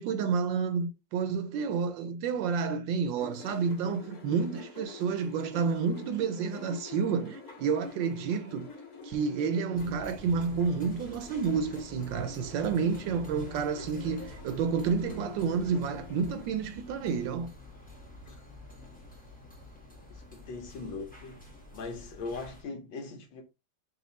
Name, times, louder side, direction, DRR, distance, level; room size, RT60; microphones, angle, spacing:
voice 1, 0.0-8.7 9.0-17.5, right 5 dB, 75° right, 1.2 m, -30 dB
sound 1, 3.2-16.5, left 4 dB, 50° left, 1.7 m, -46 dB
sound 2, 9.8-22.6, left 2 dB, 10° left, 0.5 m, -48 dB
voice 2, 20.1-21.4 21.7-23.4, left 3 dB, 75° left, 1.6 m, -40 dB
4.2 x 2.5 x 3.9 m
omnidirectional pair, 2.1 m